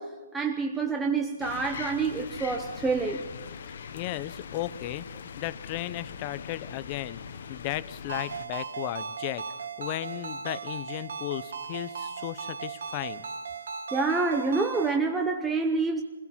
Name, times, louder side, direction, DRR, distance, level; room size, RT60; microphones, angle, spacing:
voice 1, 0.0-3.3 13.9-16.0, right 4 dB, 5° right, 0.8 m, -27 dB
sound 1, 1.4-8.5, left 6 dB, 55° left, 1.3 m, -41 dB
voice 2, 3.7-7.2 7.5-9.5 9.8-13.2, left 15 dB, 25° left, 0.7 m, -35 dB
Ringtone, 8.1-15.0, right 5 dB, 65° right, 1.4 m, -37 dB
27.0 x 17.0 x 5.7 m
hypercardioid pair, 165°, 0 cm